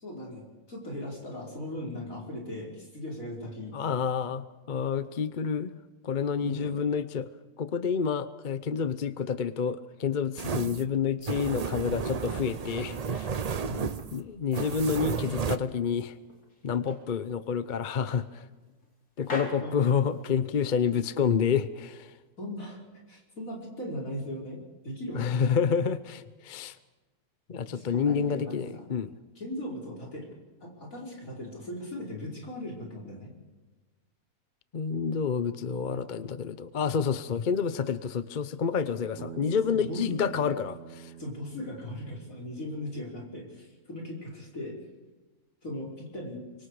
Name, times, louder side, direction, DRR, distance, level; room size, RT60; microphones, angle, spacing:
voice 1, 0.0-3.9 6.4-6.8 13.6-14.0 19.6-19.8 22.4-25.6 27.7-28.9 29.4-30.3 30.6-33.3 39.3-40.2 41.2-44.8 45.6-46.4, left 1 dB, 60° left, -1 dB, 5.6 m, -38 dB
voice 2, 3.7-5.8 6.0-7.3 7.6-13.3 14.1-16.1 16.6-18.4 19.2-22.1 25.1-26.8 27.5-29.1 34.7-41.1, left 6 dB, 45° left, 14 dB, 0.7 m, -29 dB
sound 1, 10.4-15.6, right 6 dB, 50° right, 0.4 m, -32 dB
sound 2, 13.0-14.2 14.5-15.9 16.3-17.1 17.5-17.6 18.1-18.9 19.2-20.6, left 1 dB, 80° left, 4.3 m, -44 dB
Bass guitar, 39.2-43.4, right 9 dB, 80° right, 1.6 m, -46 dB
25.0 x 24.0 x 4.9 m, 1.2 s
omnidirectional pair, 1.6 m